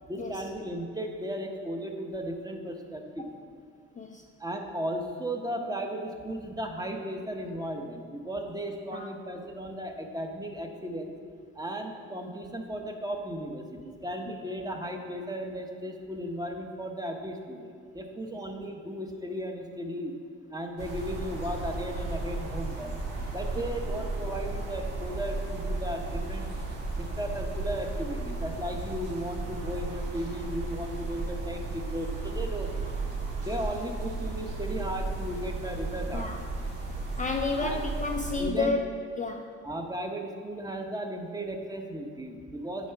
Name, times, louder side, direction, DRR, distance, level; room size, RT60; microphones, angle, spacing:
voice 1, 0.0-3.3 4.4-11.1 11.5-20.1 20.5-22.9 23.3-26.5 27.0-32.7 33.4-36.3 37.6-37.8 38.4-38.8 39.6-42.9, right 1 dB, 15° right, 3 dB, 0.8 m, -35 dB
sound 1, 20.8-38.4, right 2 dB, 85° right, 1.5 m, -34 dB
voice 2, 37.2-38.8 39.2-39.5, left 3 dB, 25° left, 2 dB, 0.4 m, -30 dB
9.2 x 3.8 x 5.6 m, 2.1 s
cardioid pair, 90°, 30 cm